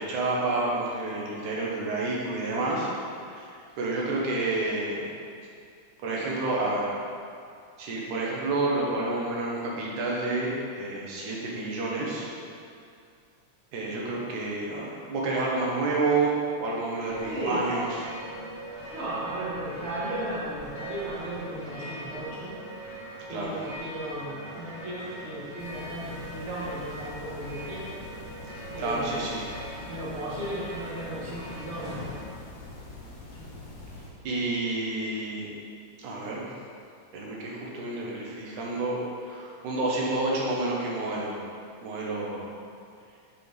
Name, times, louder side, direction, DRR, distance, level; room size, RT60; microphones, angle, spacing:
voice 1, 0.0-2.9 3.3-5.1 6.0-6.9 7.8-12.3 13.7-18.0 23.3-23.5 28.8-29.4 34.2-35.5 36.0-36.5 37.1-41.4 41.8-42.5, right 2 dB, 80° right, -4 dB, 2.6 m, -29 dB
sound 1, 17.0-32.2, right 1 dB, 30° right, 1.6 m, -41 dB
voice 2, 17.2-17.7 18.9-22.6 23.3-27.9 28.7-29.2 29.9-32.2, right 1 dB, 65° right, -6 dB, 0.6 m, -35 dB
sound 2, 25.6-34.1, left 2 dB, 55° left, 1.5 m, -45 dB
6.8 x 6.8 x 3.4 m, 2.4 s
omnidirectional pair, 3.5 m